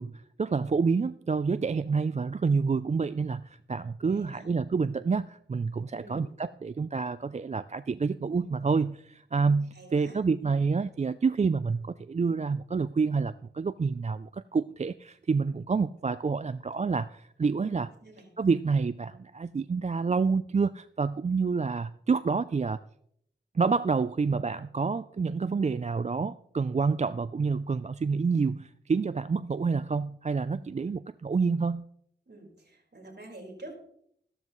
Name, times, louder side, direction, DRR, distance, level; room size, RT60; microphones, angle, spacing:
voice 1, 0.0-17.9 18.4-22.8 23.5-31.9, right 4 dB, 35° right, 14 dB, 0.4 m, -28 dB
voice 2, 4.0-4.5 5.9-6.3 9.7-10.5 17.6-18.3 30.6-31.0 32.3-33.7, right 2 dB, 60° right, -1 dB, 4.7 m, -48 dB
14.5 x 12.5 x 3.1 m, 0.68 s
wide cardioid pair, 50°, 19 cm